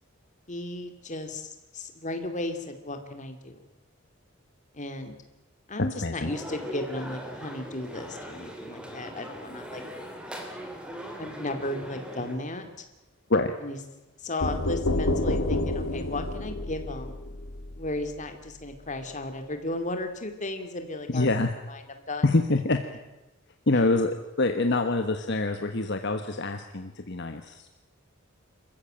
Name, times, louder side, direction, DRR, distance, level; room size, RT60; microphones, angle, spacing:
voice 1, 0.5-3.7 4.7-5.2 5.7-9.8 11.2-12.8 13.6-13.8 14.2-17.2 17.8-21.3 21.7-22.2 23.7-23.8, left 2 dB, 35° left, 6 dB, 2.6 m, -35 dB
sound 1, 6.2-12.4, right 1 dB, 5° right, 3.0 m, -40 dB
sound 2, 14.4-18.1, left 1 dB, 90° left, 2.0 m, -29 dB
voice 2, 21.1-21.5 22.2-22.8 23.7-27.7, left 2 dB, 55° left, 6 dB, 1.3 m, -25 dB
26.5 x 14.5 x 9.0 m, 1.0 s
head